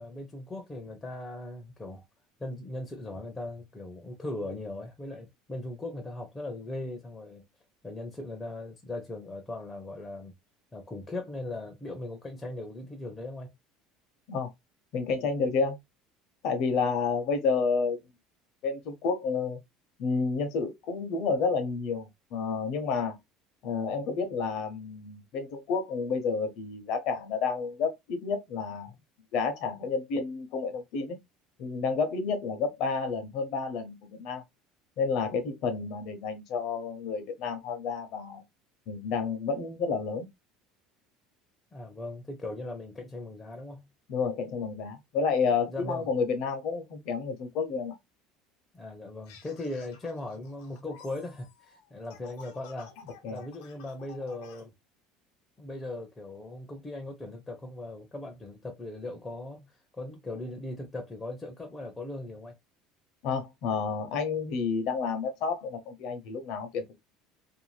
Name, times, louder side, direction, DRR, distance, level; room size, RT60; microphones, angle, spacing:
voice 1, 0.0-2.0 2.4-7.5 7.8-10.3 10.7-13.5 41.7-43.8 45.7-46.1 48.7-52.9 53.3-54.7 55.6-62.5, left 2 dB, 10° left, 0.5 m, -39 dB
voice 2, 14.9-15.8 16.4-18.0 18.6-19.6 20.0-23.1 23.6-28.9 29.3-31.2 31.6-34.4 35.0-38.4 38.9-40.3 44.1-47.9 53.2-53.4 63.2-67.0, left 5 dB, 55° left, 0.7 m, -30 dB
sound 1, 49.3-54.6, left 7 dB, 90° left, 0.8 m, -53 dB
2.6 x 2.2 x 3.1 m
cardioid pair, 155°, 0 cm